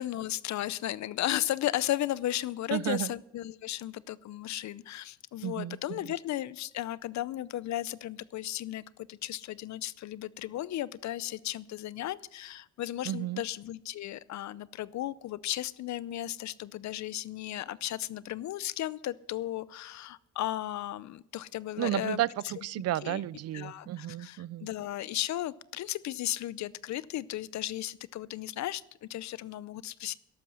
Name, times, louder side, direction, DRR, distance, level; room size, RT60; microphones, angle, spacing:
voice 1, 0.0-22.2 22.6-22.7 23.0-23.2 23.5-30.2, left 13 dB, 65° left, 19 dB, 0.6 m, -35 dB
voice 2, 2.7-3.1 5.4-6.0 13.0-13.4 21.8-24.7, right 14 dB, 55° right, 23 dB, 0.4 m, -32 dB
13.5 x 11.5 x 6.4 m, 0.80 s
cardioid pair, 90°, 30 cm